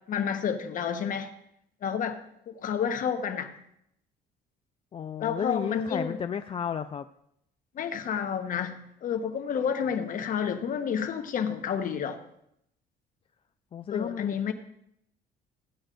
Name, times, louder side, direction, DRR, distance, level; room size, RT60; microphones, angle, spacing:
voice 1, 0.1-1.3 1.8-2.2 2.5-3.5 5.2-6.2 7.7-12.2 13.9-14.5, left 7 dB, 55° left, 7 dB, 1.1 m, -30 dB
voice 2, 4.9-7.1 13.7-14.5, left 8 dB, 35° left, 9 dB, 0.4 m, -33 dB
15.0 x 8.8 x 2.6 m, 0.74 s
cardioid pair, 110°, 17 cm